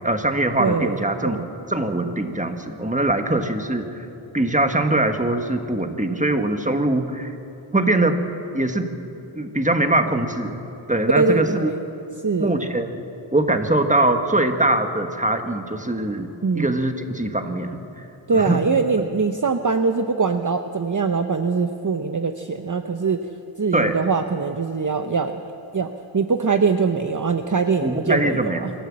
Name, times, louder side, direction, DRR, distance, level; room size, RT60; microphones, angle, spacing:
voice 1, 0.0-1.4 1.7-4.1 4.3-7.3 7.7-8.2 8.5-8.9 9.3-10.6 10.9-11.7 12.4-18.6 23.7-24.0 27.8-28.7, right 2 dB, 15° right, 6 dB, 1.4 m, -22 dB
voice 2, 0.6-1.0 1.2-1.5 11.1-11.8 12.2-12.5 16.4-16.7 18.3-23.2 23.6-25.4 25.7-28.7, right 4 dB, 40° right, 7 dB, 0.8 m, -22 dB
25.0 x 13.5 x 7.5 m, 2.9 s
wide cardioid pair, 55°, 49 cm